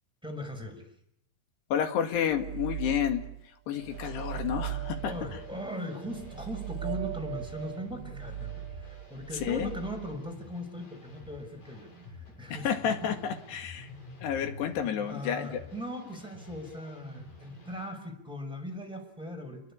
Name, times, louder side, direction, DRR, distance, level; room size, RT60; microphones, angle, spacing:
voice 1, 0.2-0.8 5.0-12.7 13.0-13.1 15.1-19.7, equal, ahead, 5 dB, 5.6 m, -39 dB
voice 2, 1.7-3.3 3.7-5.1 9.4-9.7 12.5-13.9 14.2-15.6, left 8 dB, 80° left, 6 dB, 4.1 m, -30 dB
sound 1, 2.3-3.5 3.7-10.3, right 13 dB, 85° right, 1.2 m, -39 dB
sound 2, 3.9-17.9, left 2 dB, 60° left, 8.4 m, -49 dB
28.5 x 22.5 x 8.8 m, 0.75 s
omnidirectional pair, 4.7 m